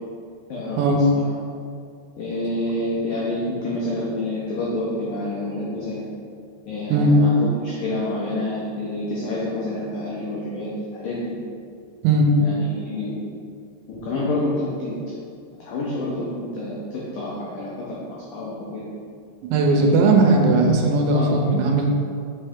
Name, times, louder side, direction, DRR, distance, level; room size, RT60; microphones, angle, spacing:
voice 1, 0.5-1.2 2.2-6.1 6.7-11.3 12.4-13.1 13.9-15.0 15.6-18.8 19.7-20.0 20.5-20.6 21.1-21.4, left 1 dB, 85° left, -6 dB, 1.8 m, -28 dB
voice 2, 19.5-21.9, right 2 dB, 85° right, 2 dB, 3.0 m, -18 dB
6.1 x 5.5 x 3.6 m, 2.3 s
omnidirectional pair, 5.1 m